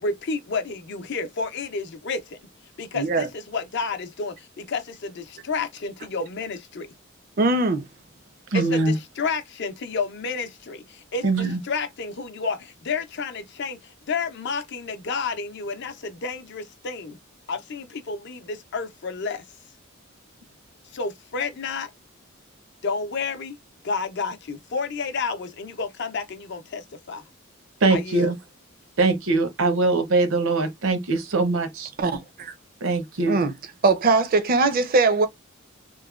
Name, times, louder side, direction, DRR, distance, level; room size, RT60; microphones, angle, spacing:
voice 1, 0.0-2.4 2.8-6.9 8.5-17.2 17.5-19.4 20.9-21.9 22.8-23.6 23.8-27.2 27.9-28.3, left 4 dB, 55° left, 0.5 m, -30 dB
voice 2, 2.9-3.3 7.4-7.9 32.0-32.5 33.2-33.5 33.8-35.3, right 3 dB, 45° right, 0.4 m, -21 dB
voice 3, 8.5-9.0 11.2-11.6 27.8-28.4 29.0-31.9 32.8-33.4, right 3 dB, 80° right, 0.7 m, -22 dB
3.0 x 2.1 x 2.3 m
head